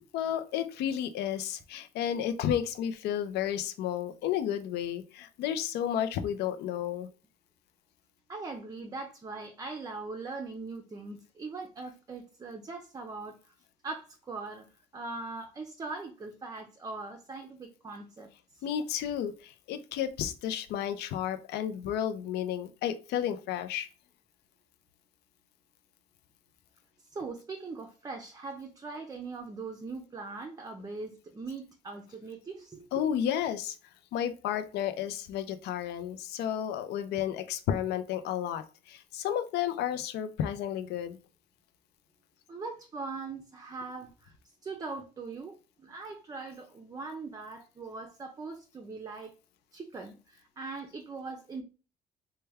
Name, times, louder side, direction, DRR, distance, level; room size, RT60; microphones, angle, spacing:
voice 1, 0.1-7.1 18.6-23.9 32.9-33.8 34.1-41.2, left 10 dB, 80° left, 0.5 m, -32 dB
voice 2, 8.3-13.5 13.8-18.7 27.0-33.0 42.5-44.3 44.6-49.3 49.7-51.6, right 3 dB, 20° right, 0.5 m, -41 dB
3.2 x 2.2 x 3.3 m
cardioid pair, 110°, 17 cm